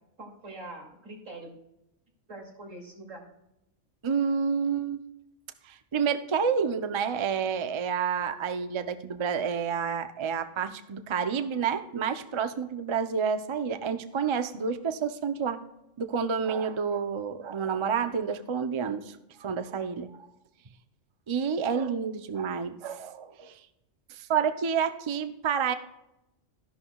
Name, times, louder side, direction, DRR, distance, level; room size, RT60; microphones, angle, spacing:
voice 1, 0.2-1.5 2.3-3.2, right 2 dB, 90° right, -1 dB, 2.9 m, -43 dB
voice 2, 4.0-5.0 5.6-15.6 16.0-20.3 21.3-23.6 24.1-25.7, right 6 dB, 35° right, 9 dB, 0.5 m, -29 dB
13.0 x 11.5 x 2.3 m, 0.88 s
omnidirectional pair, 1.3 m